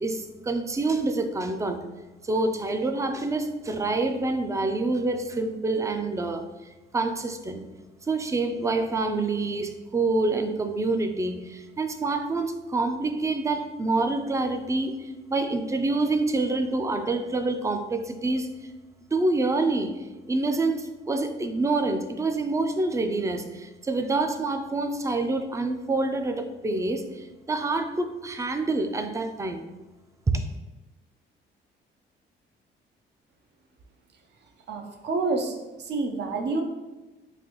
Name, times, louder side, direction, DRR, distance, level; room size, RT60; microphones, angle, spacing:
voice 1, 0.0-1.8 2.3-6.4 6.9-7.6 8.1-14.9 15.3-18.5 19.1-19.9 20.3-23.4 23.9-27.0 27.5-29.6 30.3-30.4, right 2 dB, 15° right, 7 dB, 0.3 m, -26 dB
voice 2, 34.7-36.6, right 3 dB, 60° right, 4 dB, 0.6 m, -28 dB
3.9 x 2.5 x 3.0 m, 1.1 s
cardioid pair, 90°, 20 cm